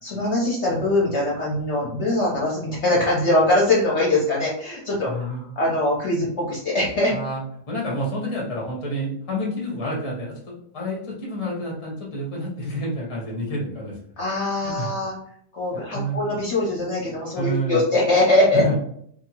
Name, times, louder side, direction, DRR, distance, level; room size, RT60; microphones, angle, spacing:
voice 1, 0.0-7.1 14.2-15.1 15.5-18.6, left 1 dB, 55° left, -5 dB, 0.8 m, -22 dB
voice 2, 5.1-5.4 7.1-7.4 7.7-13.9 14.6-14.9 15.7-16.2 17.3-17.8 18.5-18.7, equal, 30° left, -3 dB, 0.6 m, -28 dB
2.7 x 2.4 x 2.9 m, 0.66 s
omnidirectional pair, 1.8 m